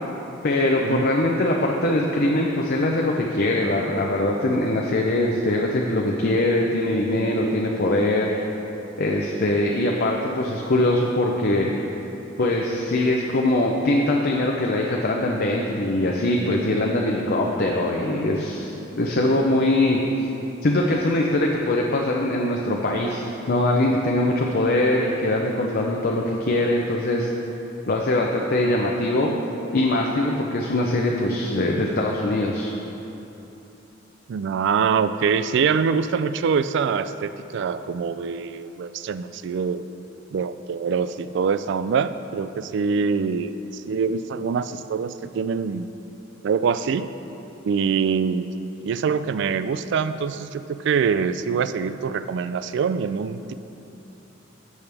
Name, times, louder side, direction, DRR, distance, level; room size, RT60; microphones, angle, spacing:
voice 1, 0.4-8.4 9.0-11.7 12.4-20.0 20.6-27.3 27.9-29.3 29.7-32.7, left 1 dB, 55° left, -1 dB, 0.6 m, -22 dB
voice 2, 34.3-39.9 40.3-45.9 46.4-47.1 47.6-48.5 48.8-53.5, right 6 dB, 65° right, 13 dB, 0.3 m, -24 dB
12.5 x 7.1 x 3.4 m, 3.0 s
head